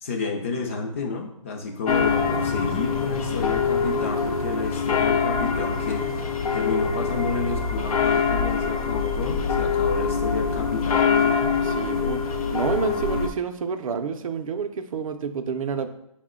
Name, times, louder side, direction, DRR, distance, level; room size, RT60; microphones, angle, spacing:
voice 1, 0.0-6.0 6.5-11.5, left 4 dB, 25° left, 2 dB, 0.4 m, -30 dB
sound 1, 1.9-13.3, left 5 dB, 85° left, 0.5 m, -24 dB
voice 2, 11.6-12.2 12.5-15.9, right 6 dB, 70° right, 8 dB, 0.5 m, -29 dB
4.9 x 2.1 x 3.6 m, 0.83 s
hypercardioid pair, 165°, 18 cm